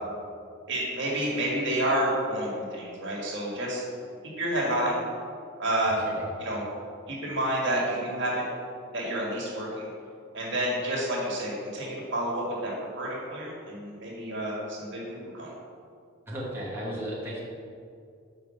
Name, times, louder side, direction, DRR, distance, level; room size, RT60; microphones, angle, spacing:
voice 1, 0.7-3.8 4.4-5.0 5.6-6.0 6.4-6.6 7.1-8.4 8.9-9.9 10.3-12.7 13.0-15.5, right 1 dB, 65° right, -4 dB, 1.8 m, -29 dB
voice 2, 16.3-17.4, equal, 10° right, -7 dB, 1.2 m, -34 dB
5.3 x 4.9 x 6.3 m, 2.3 s
head